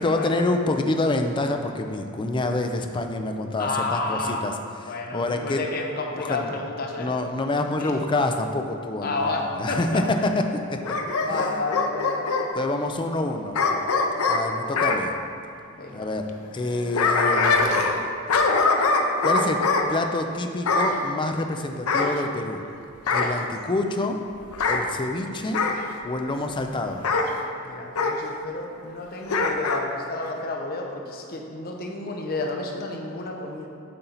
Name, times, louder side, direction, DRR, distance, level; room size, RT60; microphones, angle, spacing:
voice 1, 0.0-4.5 4.8-5.6 6.2-6.6 7.0-10.4 10.7-11.0 11.3-11.6 12.6-13.6 14.2-15.1 15.9-16.2 16.5-17.7 19.2-19.6 19.9-22.6 23.1-24.2 24.7-25.6 26.0-27.0, left 2 dB, 25° left, 5 dB, 0.4 m, -27 dB
voice 2, 3.6-4.5 4.9-7.2 7.8-8.0 9.0-10.0 11.1-12.4 15.7-16.1 23.4-23.5 26.2-26.3 27.6-33.7, left 2 dB, 45° left, 1 dB, 0.7 m, -31 dB
Bark / Growling, 10.8-12.5 13.5-15.0 16.6-18.0 18.3-19.9 20.6-21.0 21.9-22.7 23.1-23.4 24.5-24.8 25.5-25.8 27.0-27.3 27.9-28.2 29.3-29.8 30.2-30.3, left 3 dB, 90° left, 0.5 m, -22 dB
7.8 x 4.3 x 4.0 m, 2.5 s
head